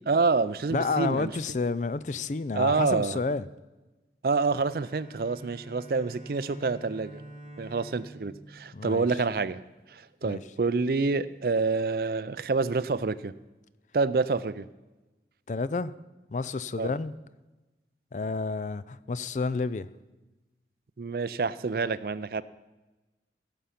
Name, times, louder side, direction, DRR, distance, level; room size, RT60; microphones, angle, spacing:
voice 1, 0.1-1.3 2.5-3.2 4.2-7.2 7.6-9.6 9.9-13.3 13.9-14.7 16.8-16.9 21.0-22.4, right 4 dB, 55° right, 16 dB, 0.4 m, -27 dB
voice 2, 0.7-3.4 8.7-9.1 10.2-10.4 15.5-15.9 16.3-17.1 18.1-19.9, left 3 dB, 45° left, 16 dB, 0.4 m, -30 dB
Bowed string instrument, 4.4-9.9, right 1 dB, 25° left, 3.3 m, -48 dB
16.0 x 7.0 x 5.8 m, 1.1 s
head